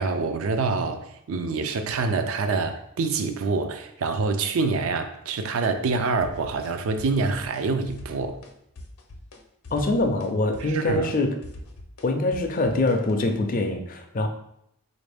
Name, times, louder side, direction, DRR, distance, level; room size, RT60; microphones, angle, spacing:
voice 1, 0.0-8.4 10.6-11.1, right 4 dB, 70° right, 0.4 m, -26 dB
sound 1, 6.2-6.7 7.0-7.6 7.9-8.5 8.8-9.4 9.6-13.3, left 1 dB, 85° left, 0.6 m, -42 dB
voice 2, 9.7-11.4 12.0-14.3, left 2 dB, 40° left, 0.4 m, -24 dB
4.1 x 2.6 x 3.3 m
head